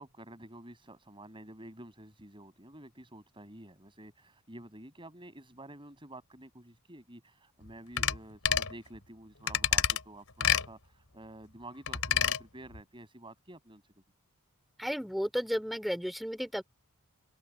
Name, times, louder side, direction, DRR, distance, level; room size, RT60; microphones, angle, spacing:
voice 1, 0.0-13.9, right 1 dB, 25° right, 6.8 m, -50 dB
sound 1, 8.0-8.2 8.5-8.7 9.5-10.0 10.4-10.7 11.9-12.4 12.7-12.8, left 9 dB, 70° left, 4.3 m, -27 dB
voice 2, 14.8-16.6, equal, ahead, 3.5 m, -33 dB
head